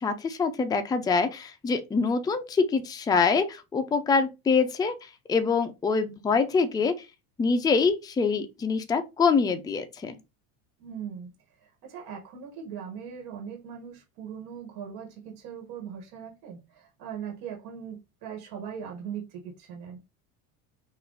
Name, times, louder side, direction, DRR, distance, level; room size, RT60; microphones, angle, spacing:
voice 1, 0.0-7.1 7.4-10.1, left 4 dB, 10° left, 0.4 m, -25 dB
voice 2, 10.8-11.3 11.6-20.0, right 7 dB, 60° right, 1.5 m, -40 dB
3.9 x 2.6 x 3.9 m
supercardioid pair, 100°, 42 cm